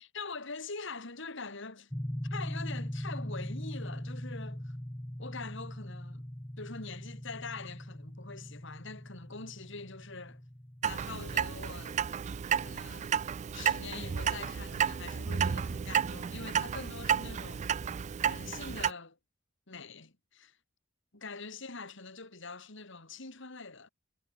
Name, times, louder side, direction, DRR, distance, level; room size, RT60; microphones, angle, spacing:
voice 1, 0.0-1.9 2.3-4.8 5.2-6.2 6.6-10.4 10.8-12.0 12.5-13.2 13.5-17.7 18.2-19.2 19.7-20.6 21.1-23.9, left 4 dB, 70° left, 3.2 m, -44 dB
sound 1, 1.9-11.6, equal, 10° left, 1.1 m, -41 dB
Clock, 10.8-18.9, right 8 dB, 35° right, 0.3 m, -32 dB
head